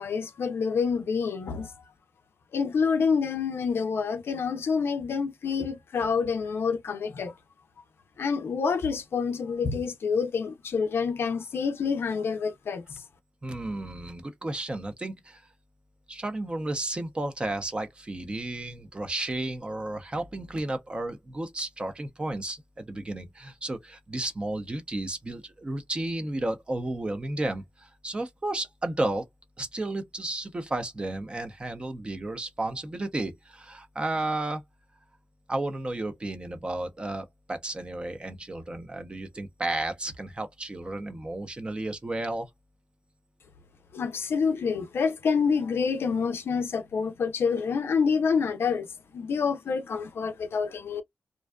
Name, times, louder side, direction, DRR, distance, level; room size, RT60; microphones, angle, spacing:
voice 1, 0.0-1.7 2.5-7.3 8.2-12.8 43.9-48.9 49.1-51.0, left 5 dB, 70° left, 0.5 m, -27 dB
voice 2, 13.4-15.5 16.1-29.2 29.6-34.6 35.5-42.5, right 2 dB, 25° right, 0.6 m, -33 dB
2.5 x 2.3 x 2.2 m
wide cardioid pair, 100°, 4 cm